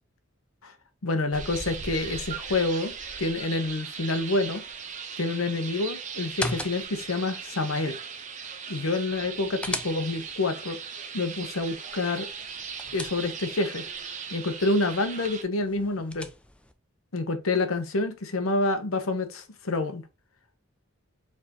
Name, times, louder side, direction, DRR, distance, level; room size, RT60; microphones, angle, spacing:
voice 1, 1.0-2.9 3.2-4.6 5.2-8.0 8.7-10.8 11.1-12.3 12.9-13.8 14.3-16.3 17.1-20.0, left 2 dB, 90° left, 0.9 m, -28 dB
sound 1, 1.3-15.4, right 6 dB, 35° right, 0.7 m, -38 dB
sound 2, 6.2-7.1 9.1-10.4 12.4-13.6 15.6-16.7, left 1 dB, 5° left, 0.4 m, -37 dB
4.5 x 3.5 x 2.9 m
head